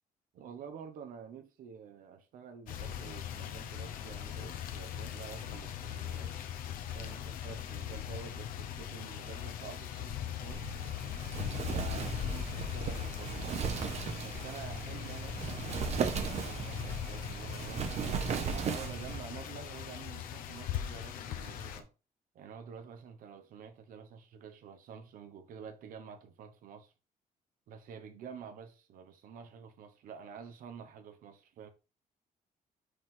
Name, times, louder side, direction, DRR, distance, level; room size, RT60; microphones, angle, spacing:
voice 1, 0.3-6.3 6.9-10.7 11.7-13.6 14.2-17.9 18.5-21.9 22.3-26.9 27.7-31.7, right 7 dB, 80° right, 1.1 m, -49 dB
sound 1, 2.7-21.8, left 10 dB, 85° left, 0.9 m, -40 dB
Wind, 10.5-19.2, right 6 dB, 50° right, 0.9 m, -37 dB
6.2 x 5.0 x 3.8 m
cardioid pair, 150°, 14 cm